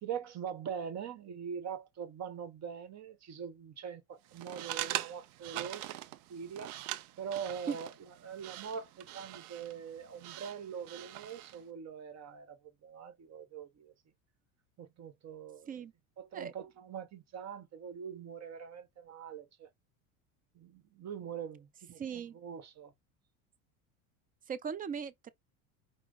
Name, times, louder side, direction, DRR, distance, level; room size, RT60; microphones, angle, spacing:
voice 1, 0.0-6.0 6.3-6.7 7.2-7.9 8.2-13.9 14.8-15.8 16.2-19.7 20.5-22.0 22.3-22.9, right 7 dB, 40° right, 1.0 m, -43 dB
sound 1, 4.3-11.6, right 14 dB, 80° right, 0.6 m, -43 dB
voice 2, 22.0-22.4 24.5-25.3, right 7 dB, 20° right, 0.4 m, -38 dB
4.8 x 2.0 x 3.9 m
hypercardioid pair, 85°, 43 cm